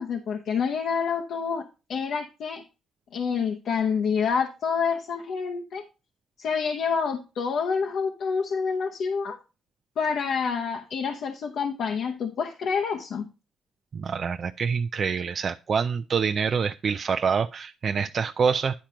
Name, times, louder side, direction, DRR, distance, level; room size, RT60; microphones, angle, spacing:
voice 1, 0.0-2.6 3.1-5.8 6.4-9.4 10.0-13.3, left 6 dB, 70° left, 0.9 m, -28 dB
voice 2, 13.9-18.8, right 6 dB, 45° right, 0.4 m, -26 dB
10.5 x 4.4 x 5.0 m
cardioid pair, 90°, 0 cm